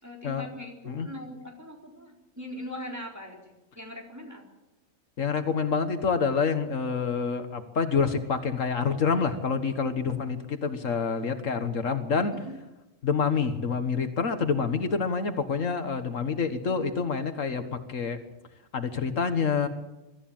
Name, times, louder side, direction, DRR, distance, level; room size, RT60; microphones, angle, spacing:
voice 1, 0.0-4.4 12.4-12.6 16.7-16.8, left 1 dB, 10° right, 0 dB, 4.2 m, -41 dB
voice 2, 5.2-12.3 13.0-18.2 18.7-19.7, left 5 dB, 75° left, 8 dB, 1.8 m, -27 dB
23.0 x 14.0 x 8.9 m, 1.0 s
omnidirectional pair, 1.4 m